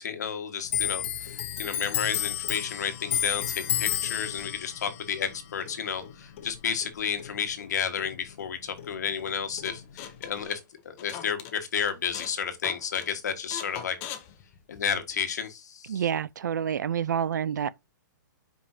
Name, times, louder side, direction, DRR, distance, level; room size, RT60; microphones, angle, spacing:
voice 1, 0.0-10.6 10.8-14.0 14.7-16.0, left 7 dB, 55° left, 1.6 m, -32 dB
Clock, 0.7-7.7 8.0-9.3 9.6-10.4, left 11 dB, 35° left, 1.0 m, -32 dB
sound 1, 9.6-11.6 11.9-12.4 12.6-13.1 13.5-15.1, left 9 dB, 15° left, 0.6 m, -40 dB
voice 2, 15.9-17.7, right 8 dB, 60° right, 0.5 m, -28 dB
9.9 x 5.3 x 2.8 m
hypercardioid pair, 180°, 11 cm